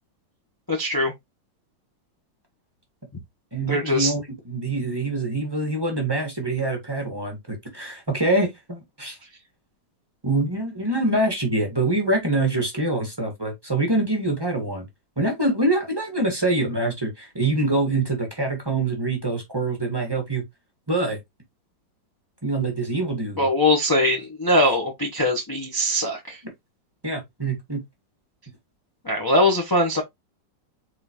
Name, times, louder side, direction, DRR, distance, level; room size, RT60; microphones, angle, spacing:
voice 1, 0.7-1.1 3.7-4.1 23.4-26.4 29.0-30.0, left 1 dB, 20° left, 0.7 m, -21 dB
voice 2, 3.5-9.2 10.2-14.9 15.2-20.4 20.9-21.2 22.4-23.5 27.0-27.8, right 2 dB, 15° right, 1.2 m, -25 dB
4.4 x 3.8 x 2.8 m
omnidirectional pair, 2.0 m